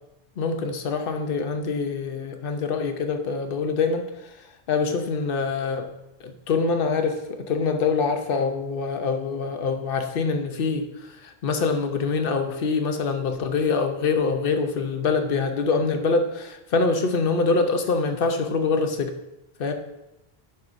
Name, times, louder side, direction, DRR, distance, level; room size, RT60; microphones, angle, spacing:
voice 1, 0.4-5.9 6.2-19.1 19.6-19.7, left 4 dB, 60° left, 6 dB, 1.0 m, -25 dB
10.5 x 5.7 x 2.6 m, 0.88 s
omnidirectional pair, 1.1 m